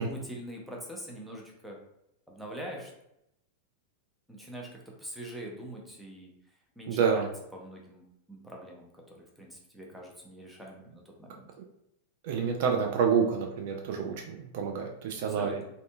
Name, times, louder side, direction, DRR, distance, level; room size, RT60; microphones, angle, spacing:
voice 1, 0.0-1.8 2.3-2.9 4.3-6.3 6.8-11.5 15.3-15.6, equal, ahead, -2 dB, 0.6 m, -43 dB
voice 2, 6.9-7.3 12.2-15.6, right 6 dB, 50° right, 2 dB, 0.3 m, -28 dB
2.6 x 2.6 x 2.2 m, 0.80 s
figure-of-eight pair, 90°, 0 cm